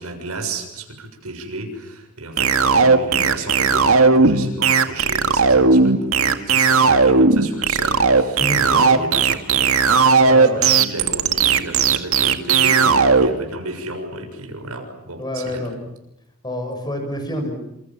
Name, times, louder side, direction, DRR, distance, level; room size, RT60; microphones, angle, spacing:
voice 1, 0.0-15.8, right 2 dB, 90° right, 5 dB, 6.9 m, -33 dB
sound 1, 2.4-13.3, right 4 dB, 70° right, 1.9 m, -15 dB
voice 2, 10.2-10.7 15.2-15.8 16.4-17.5, left 1 dB, 20° left, 5 dB, 6.9 m, -27 dB
28.5 x 28.0 x 7.4 m, 0.86 s
head